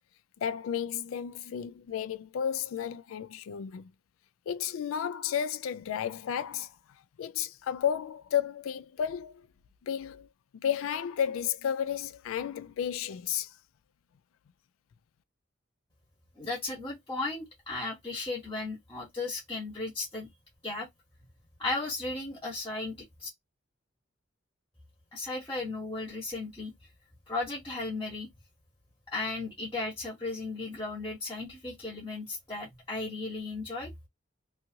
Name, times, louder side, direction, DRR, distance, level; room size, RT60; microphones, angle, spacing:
voice 1, 0.4-3.9 4.5-6.7 7.2-9.5 9.8-10.3 10.5-13.6, left 8 dB, 85° left, 0.3 m, -32 dB
voice 2, 16.4-20.3 20.6-20.9 21.6-23.3 25.1-26.7 27.3-28.3 29.1-33.9, left 3 dB, 15° left, 1.0 m, -35 dB
2.7 x 2.4 x 2.8 m
head